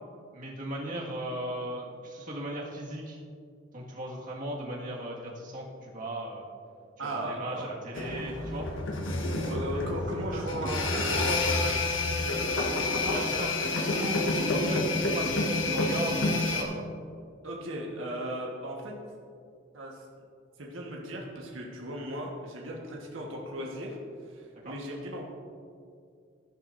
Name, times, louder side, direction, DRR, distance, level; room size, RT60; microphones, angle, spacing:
voice 1, 0.3-3.2 3.7-6.5 7.0-8.7 10.3-10.5 13.0-13.5 13.9-16.9 24.5-24.7, right 1 dB, 40° right, -3 dB, 1.8 m, -37 dB
voice 2, 7.0-7.7 9.5-11.8 12.2-12.6 13.0-14.0 17.4-18.9 19.7-20.1 20.6-25.2, right 1 dB, 90° right, -2 dB, 1.4 m, -37 dB
sound 1, 8.0-16.6, left 2 dB, 75° left, 1.3 m, -29 dB
sound 2, 8.6-13.6, left 1 dB, 50° left, 0.8 m, -36 dB
13.5 x 10.5 x 2.6 m, 2.3 s
head